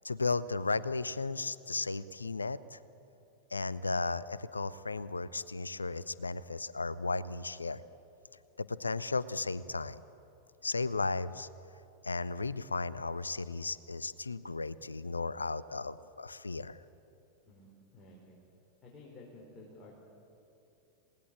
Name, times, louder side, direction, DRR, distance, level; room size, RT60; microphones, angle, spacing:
voice 1, 0.0-2.8 3.5-7.8 8.6-10.0 10.6-11.5 12.0-16.8, left 3 dB, 80° left, 18 dB, 0.7 m, -35 dB
voice 2, 17.5-18.4 18.8-19.9, left 2 dB, 20° left, -4 dB, 5.5 m, -53 dB
28.0 x 19.0 x 8.7 m, 2.8 s
figure-of-eight pair, 90°, 0 cm